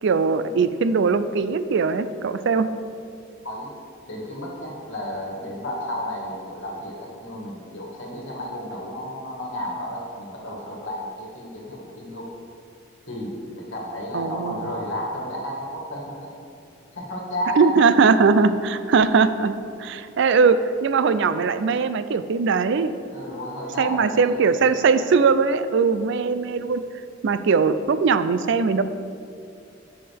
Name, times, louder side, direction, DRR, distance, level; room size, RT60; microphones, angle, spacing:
voice 1, 0.0-2.7 14.1-14.6 17.6-19.5 19.8-22.9 23.8-26.8 27.2-28.8, right 5 dB, 65° right, 11 dB, 0.4 m, -20 dB
voice 2, 4.1-12.3 13.1-16.3 16.9-17.9 23.1-24.4 26.5-26.7, equal, 70° left, -2 dB, 1.8 m, -32 dB
12.5 x 5.6 x 3.5 m, 2.5 s
head